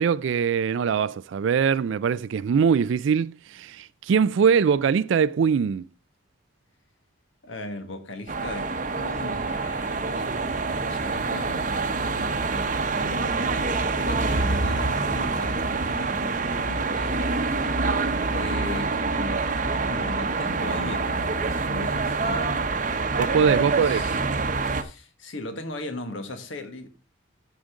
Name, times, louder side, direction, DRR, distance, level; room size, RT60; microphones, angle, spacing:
voice 1, 0.0-5.8 23.2-24.0, right 6 dB, 70° right, 0.3 m, -22 dB
voice 2, 7.4-17.3 17.7-17.8 18.2-22.7 23.4-24.2 24.6-26.9, left 2 dB, 70° left, 1.6 m, -39 dB
sound 1, 8.3-24.8, right 3 dB, 40° right, 0.8 m, -26 dB
14.0 x 5.1 x 3.7 m
head